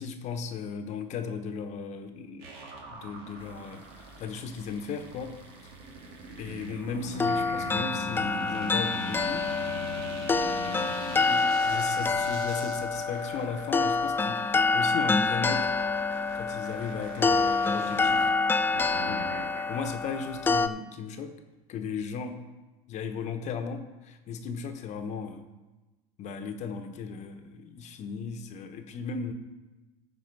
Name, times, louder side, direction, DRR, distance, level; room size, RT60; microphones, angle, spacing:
voice 1, 0.0-2.5 2.9-5.7 6.4-9.5 10.6-10.9 11.3-15.7 16.3-18.3 19.1-19.3 19.7-21.4 21.7-22.4 22.9-25.4 26.2-29.3, left 5 dB, 50° left, 7 dB, 1.0 m, -36 dB
sound 1, 2.4-19.9, right 3 dB, 75° right, 1.9 m, -43 dB
sound 2, 7.2-20.7, left 4 dB, 15° left, 0.4 m, -27 dB
14.0 x 4.9 x 4.7 m, 1.1 s
supercardioid pair, 105°, 15 cm